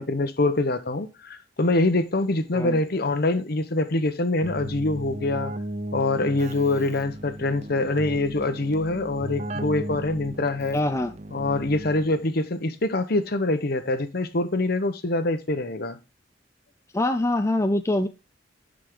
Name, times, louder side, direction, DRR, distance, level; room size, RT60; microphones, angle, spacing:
voice 1, 0.0-5.5 5.9-10.8 11.3-16.0, left 2 dB, 55° left, 1.0 m, -25 dB
Keyboard (musical), 4.4-12.3, right 1 dB, 40° right, 0.7 m, -36 dB
voice 2, 10.7-11.2 16.9-18.1, left 1 dB, 15° left, 0.4 m, -24 dB
10.0 x 5.1 x 3.8 m
head